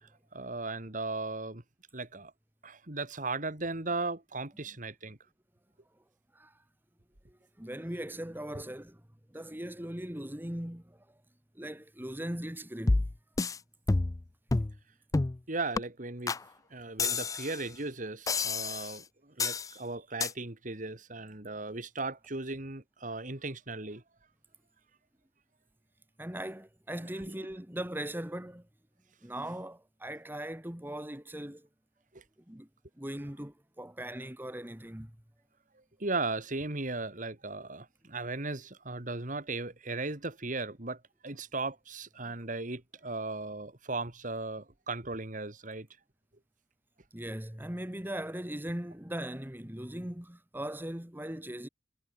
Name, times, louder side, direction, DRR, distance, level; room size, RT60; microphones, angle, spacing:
voice 1, 0.0-1.6 1.9-2.3 2.6-5.2 15.5-16.4 16.7-24.0 32.1-32.2 36.0-45.9, right 3 dB, 50° right, 2.6 m, -37 dB
voice 2, 7.3-11.2 11.5-13.1 26.2-28.7 29.2-31.7 32.5-32.7 33.0-35.2 47.1-51.7, right 1 dB, 10° right, 2.0 m, -39 dB
sound 1, 12.9-13.6 13.9-14.2 14.5-14.8 15.1-15.4 15.8-15.9 16.3-16.4 17.0-17.6 18.3-19.0 19.4-19.7 20.2-20.3, left 3 dB, 20° left, 0.4 m, -29 dB
head